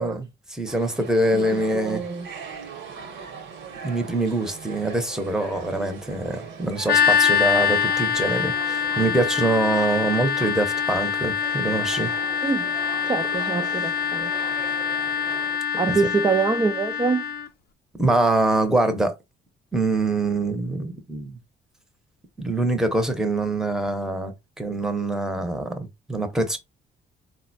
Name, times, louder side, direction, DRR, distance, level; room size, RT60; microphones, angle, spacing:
voice 1, 0.0-2.0 3.8-12.1 18.0-19.2 19.7-21.4 22.4-26.6, right 2 dB, 5° right, 0.8 m, -24 dB
sound 1, 0.7-15.6, right 6 dB, 65° right, 0.9 m, -39 dB
voice 2, 1.3-2.3 12.4-12.7 13.0-14.3 15.8-17.3, right 5 dB, 20° right, 0.4 m, -25 dB
sound 2, 6.9-17.5, left 8 dB, 50° left, 0.5 m, -24 dB
3.8 x 2.1 x 2.6 m
cardioid pair, 90°, 20 cm